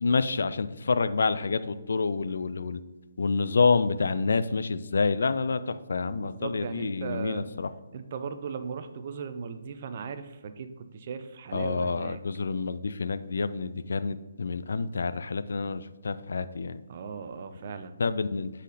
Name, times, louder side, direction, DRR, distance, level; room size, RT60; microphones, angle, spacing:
voice 1, 0.0-2.8 3.2-7.7 11.5-16.8 18.0-18.5, left 4 dB, 60° left, 12 dB, 0.4 m, -28 dB
voice 2, 6.2-7.4 7.9-12.2 16.9-18.0, right 6 dB, 40° right, 9 dB, 0.6 m, -37 dB
8.0 x 4.2 x 4.0 m, 1.2 s
figure-of-eight pair, 140°, 0 cm